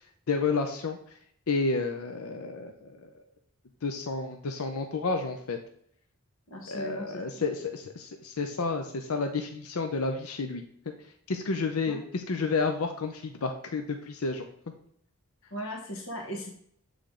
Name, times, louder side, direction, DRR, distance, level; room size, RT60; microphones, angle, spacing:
voice 1, 0.3-1.0 1.5-3.1 3.8-5.6 6.7-10.6 11.3-14.5, left 4 dB, 80° left, 5 dB, 0.6 m, -30 dB
voice 2, 6.5-7.2 11.9-12.0 15.5-16.5, equal, 60° left, -1 dB, 1.2 m, -37 dB
8.4 x 3.4 x 3.7 m, 0.66 s
head